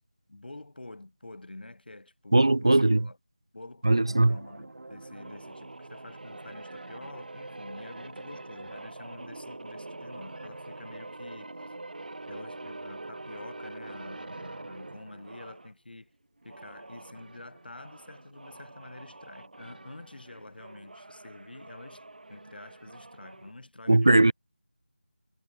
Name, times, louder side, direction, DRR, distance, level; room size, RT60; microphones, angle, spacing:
voice 1, 0.3-3.2 3.5-11.5 12.3-16.1 16.4-22.0 22.3-24.3, left 2 dB, 60° left, 3.4 m, -47 dB
voice 2, 2.3-3.0 3.8-4.3 23.9-24.3, right 2 dB, 30° right, 0.3 m, -19 dB
sound 1, 4.0-15.7 16.4-23.5, right 2 dB, 55° right, 2.6 m, -44 dB
figure-of-eight pair, 175°, 6 cm